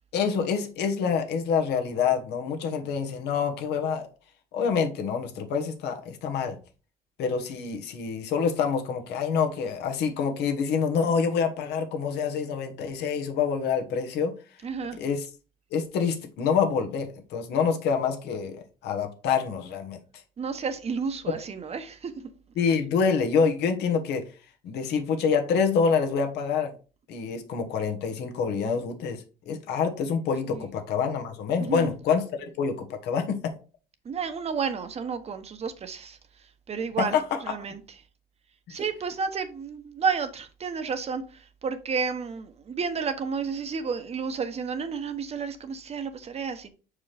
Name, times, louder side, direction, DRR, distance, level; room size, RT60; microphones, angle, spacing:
voice 1, 0.1-4.1 4.5-6.6 7.2-14.3 15.0-15.3 15.7-20.0 22.6-24.2 24.6-26.7 27.1-32.2 32.6-33.5 37.0-37.4 38.7-38.8, left 6 dB, 80° left, 1.2 m, -26 dB
voice 2, 14.6-15.0 20.4-22.3 30.5-30.7 31.6-31.9 34.0-36.2 36.7-37.2 37.4-37.8 38.7-46.7, right 5 dB, 40° right, 0.9 m, -31 dB
5.9 x 4.8 x 3.4 m
cardioid pair, 110°, 17 cm